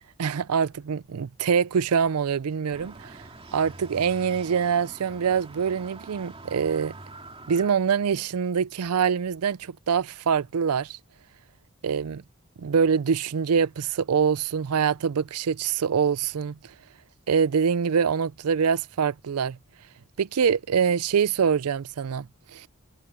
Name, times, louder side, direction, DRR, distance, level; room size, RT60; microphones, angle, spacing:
voice 1, 0.2-3.2 3.5-6.9 7.5-11.0 11.8-12.2 12.6-16.6 17.3-19.6 20.2-22.7, right 6 dB, 90° right, 0.5 m, -24 dB
sound 1, 2.7-7.7, right 2 dB, 25° right, 2.7 m, -45 dB
head